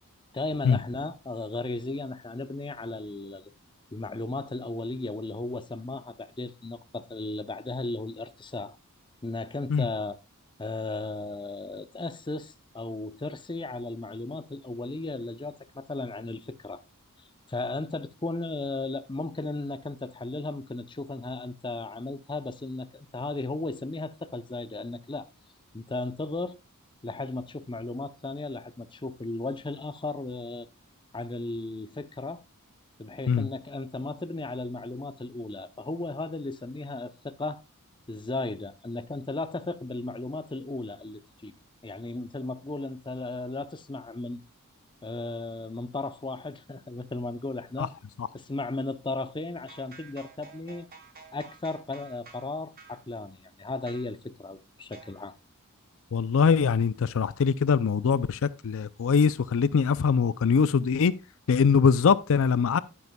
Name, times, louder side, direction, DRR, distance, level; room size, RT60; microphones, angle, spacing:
voice 1, 0.3-3.5 3.9-8.8 9.2-10.2 10.6-16.8 17.5-25.3 25.7-26.6 27.0-30.7 31.1-32.4 33.0-37.6 38.1-41.5 41.8-44.4 45.0-47.9 48.3-50.9 51.3-55.3, left 2 dB, 20° left, 0.6 m, -35 dB
sound 1, 49.5-52.5 52.8-53.0 53.8-54.1 54.9-55.3, right 5 dB, 40° right, 1.8 m, -50 dB
voice 2, 56.1-61.1 61.5-62.8, left 6 dB, 65° left, 0.4 m, -22 dB
10.5 x 9.4 x 2.2 m
head